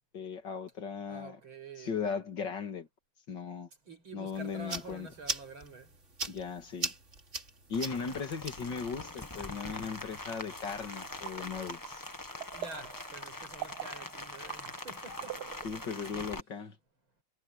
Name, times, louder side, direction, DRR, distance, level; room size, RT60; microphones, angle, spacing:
voice 1, 0.1-1.4 1.8-2.9 3.3-3.7 4.1-5.1 6.3-6.9 7.7-12.0 15.6-16.8, left 6 dB, 60° left, 2.7 m, -37 dB
voice 2, 1.1-2.0 3.9-5.9 12.5-15.4 15.9-16.2, right 3 dB, 90° right, 5.9 m, -47 dB
sound 1, 4.3-11.7, right 3 dB, 35° right, 3.0 m, -42 dB
Rain, 7.7-16.4, left 2 dB, 15° left, 0.9 m, -43 dB
sound 2, 11.0-16.0, right 12 dB, 60° right, 1.2 m, -45 dB
omnidirectional pair, 2.2 m